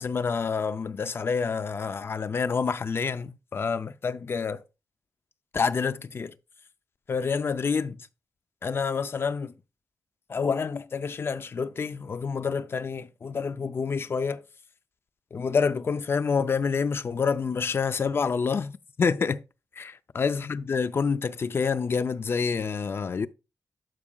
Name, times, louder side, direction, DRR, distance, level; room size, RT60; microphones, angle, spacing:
voice 1, 0.0-4.6 5.5-6.3 7.1-8.1 8.6-9.5 10.3-14.4 15.3-19.4 19.8-23.3, left 5 dB, 40° left, 0.4 m, -28 dB
12.0 x 4.8 x 2.3 m
wide cardioid pair, 160°, 6 cm